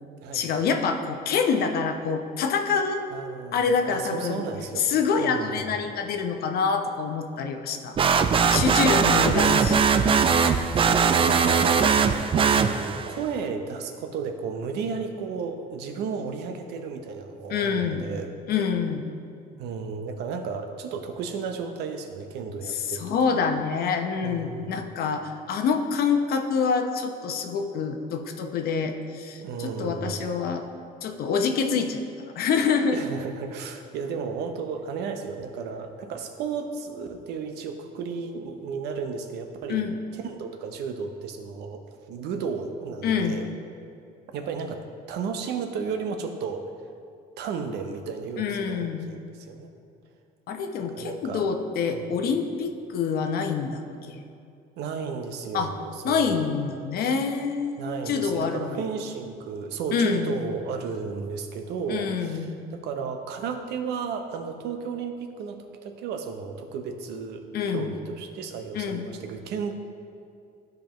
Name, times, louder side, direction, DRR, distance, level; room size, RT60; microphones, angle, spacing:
voice 1, 0.3-3.0 3.5-4.4 4.8-8.0 8.5-9.9 17.5-18.0 18.5-19.1 22.7-30.6 31.0-32.0 32.3-33.0 39.7-39.9 43.0-43.4 48.4-49.1 50.5-53.8 54.1-54.2 55.5-55.7 56.0-58.8 59.9-60.3 61.9-62.6 67.5-67.9 68.7-69.1, left 5 dB, 65° left, 5 dB, 0.8 m, -26 dB
voice 2, 3.1-4.9 5.2-5.7 8.9-9.5 10.7-12.1 12.4-18.3 19.6-23.2 24.2-24.8 29.4-30.3 32.9-39.8 40.1-41.8 42.1-43.5 44.3-46.7 47.4-49.7 50.9-51.4 51.9-52.0 54.8-56.5 57.8-69.7, right 5 dB, 80° right, 6 dB, 0.8 m, -33 dB
sound 1, 8.0-13.2, right 6 dB, 30° right, 0.4 m, -20 dB
12.5 x 5.2 x 3.0 m, 2.5 s
cardioid pair, 110°, 17 cm